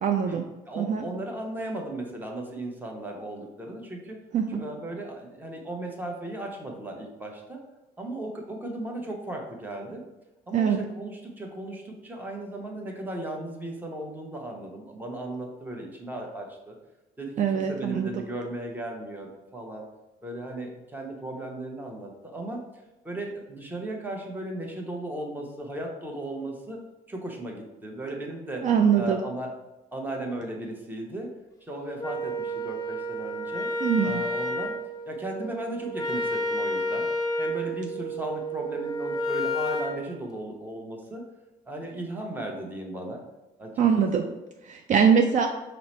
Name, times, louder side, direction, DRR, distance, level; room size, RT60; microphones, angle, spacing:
voice 1, 0.0-0.5 0.8-1.0 4.3-4.6 10.5-10.8 17.4-18.2 28.6-29.2 33.8-34.2 43.8-44.2 44.7-45.5, right 7 dB, 50° right, 4 dB, 0.4 m, -23 dB
voice 2, 0.7-4.2 4.5-7.6 8.0-10.1 10.5-16.8 17.2-19.9 20.2-26.8 27.1-28.7 29.0-29.5 29.9-31.3 31.6-33.7 34.0-34.8 35.1-37.1 37.4-41.2 41.7-43.2 43.6-44.3, right 1 dB, 10° right, 0 dB, 0.8 m, -36 dB
Wind instrument woodwind instrument, 32.0-40.0, equal, 20° left, 0.6 m, -30 dB
4.6 x 2.0 x 4.2 m, 1.0 s
cardioid pair, 110°, 17 cm